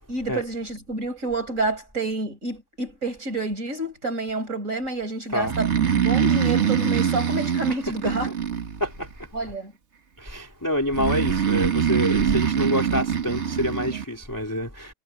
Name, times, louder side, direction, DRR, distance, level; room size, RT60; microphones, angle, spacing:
voice 1, 0.1-8.3 9.3-9.7, right 2 dB, 25° right, 5.7 m, -29 dB
Breathing, 5.4-9.1 10.9-14.0, right 8 dB, 75° right, 0.6 m, -23 dB
voice 2, 10.2-14.9, left 1 dB, 5° left, 2.8 m, -27 dB
omnidirectional pair, 3.6 m